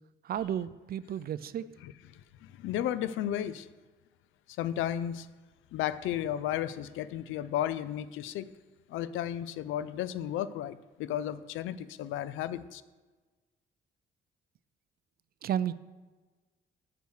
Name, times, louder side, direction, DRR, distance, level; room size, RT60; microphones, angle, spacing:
voice 1, 0.2-1.6 15.4-15.7, right 10 dB, 50° right, 16 dB, 0.4 m, -32 dB
voice 2, 1.8-3.7 4.6-5.3 5.7-8.5 8.9-12.8, left 11 dB, 85° left, 16 dB, 0.4 m, -34 dB
6.1 x 5.4 x 6.4 m, 1.3 s
cardioid pair, 90°, 20 cm